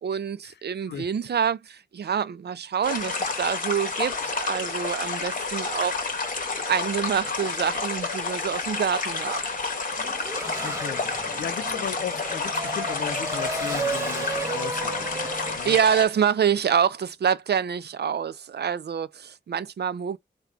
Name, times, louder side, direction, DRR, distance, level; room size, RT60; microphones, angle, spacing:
voice 1, 0.0-6.3 6.7-9.4 15.3-20.2, right 8 dB, 65° right, 0.4 m, -26 dB
sound 1, 2.8-16.1, left 4 dB, 50° left, 0.9 m, -30 dB
Race car auto racing / Accelerating revving vroom, 9.9-15.6, right 2 dB, 15° right, 0.8 m, -33 dB
voice 2, 10.6-11.0 11.4-15.8, left 8 dB, 70° left, 0.4 m, -36 dB
3.7 x 2.2 x 4.4 m
wide cardioid pair, 120°, 18 cm